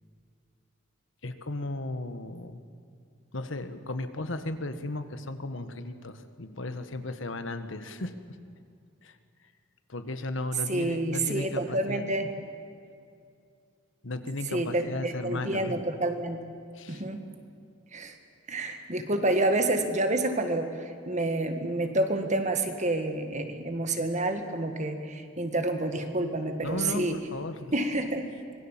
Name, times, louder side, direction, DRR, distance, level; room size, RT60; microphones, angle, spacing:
voice 1, 1.2-2.6 3.3-8.1 9.0-9.2 9.9-12.0 14.0-15.7 16.7-17.0 26.6-27.7, left 2 dB, 70° left, 9 dB, 1.4 m, -35 dB
voice 2, 10.7-12.3 14.5-16.4 16.9-17.2 17.9-18.2 18.5-27.2 27.7-28.5, right 2 dB, 35° right, 6 dB, 1.9 m, -29 dB
25.5 x 21.0 x 7.4 m, 2.4 s
head